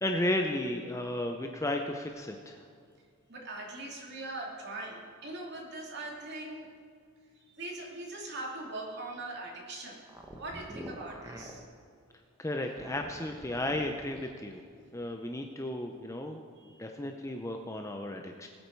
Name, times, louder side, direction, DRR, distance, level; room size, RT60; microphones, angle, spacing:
voice 1, 0.0-2.6 12.4-14.6 14.9-16.5 16.8-18.5, left 1 dB, 15° left, 4 dB, 0.6 m, -34 dB
voice 2, 3.3-6.7 7.3-10.0 10.4-11.6 14.7-14.8 16.5-16.9, right 2 dB, 50° right, -1 dB, 2.6 m, -41 dB
sound 1, 10.0-11.6 12.6-14.4, equal, 15° right, 1.2 m, -46 dB
19.5 x 8.4 x 4.6 m, 2.2 s
head